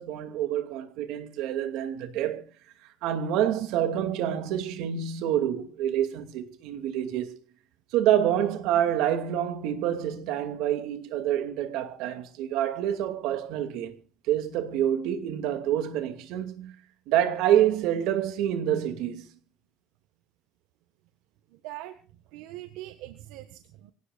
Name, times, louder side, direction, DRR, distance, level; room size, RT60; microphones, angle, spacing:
voice 1, 0.0-2.4 3.0-7.4 7.9-13.9 14.3-16.7 17.1-19.3, right 11 dB, 70° right, 2.5 m, -27 dB
voice 2, 21.5-22.0 22.3-23.9, right 15 dB, 85° right, 1.5 m, -42 dB
25.5 x 17.5 x 2.5 m
cardioid pair, 170°, 0 cm